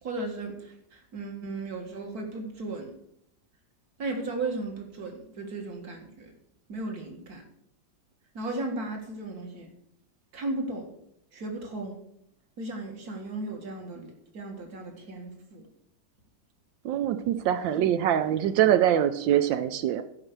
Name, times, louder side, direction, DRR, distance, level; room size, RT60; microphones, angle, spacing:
voice 1, 0.0-2.9 4.0-6.3 6.7-7.4 8.3-9.7 10.3-10.9 11.3-12.0 12.6-15.7, right 2 dB, 55° right, 3 dB, 2.4 m, -35 dB
voice 2, 16.8-20.0, right 11 dB, 80° right, 9 dB, 1.4 m, -24 dB
14.0 x 5.9 x 6.7 m, 0.75 s
omnidirectional pair, 2.0 m